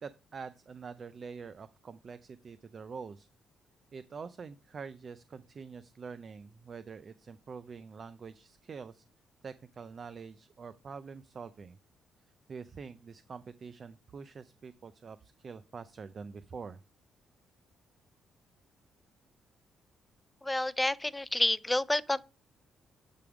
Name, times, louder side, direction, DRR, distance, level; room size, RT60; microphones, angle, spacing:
voice 1, 0.0-3.3 3.9-9.0 9.4-11.8 12.5-16.8, right 5 dB, 45° right, 0.4 m, -45 dB
voice 2, 20.4-22.2, left 1 dB, 10° left, 0.4 m, -29 dB
10.0 x 3.6 x 4.8 m
cardioid pair, 90°, 0 cm